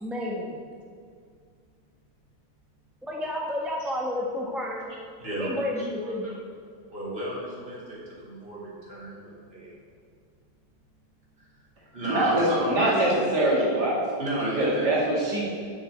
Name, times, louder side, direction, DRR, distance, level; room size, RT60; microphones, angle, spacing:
voice 1, 0.0-0.5 3.1-4.9 5.4-6.3, left 1 dB, ahead, -2 dB, 1.2 m, -31 dB
voice 2, 5.2-6.3 6.9-9.7 11.4-11.5 11.9-13.2 14.2-14.9, right 1 dB, 30° right, -6 dB, 3.6 m, -33 dB
voice 3, 12.1-14.1 14.6-15.4, right 1 dB, 60° right, -5 dB, 3.1 m, -23 dB
9.4 x 7.3 x 8.2 m, 2.2 s
omnidirectional pair, 2.1 m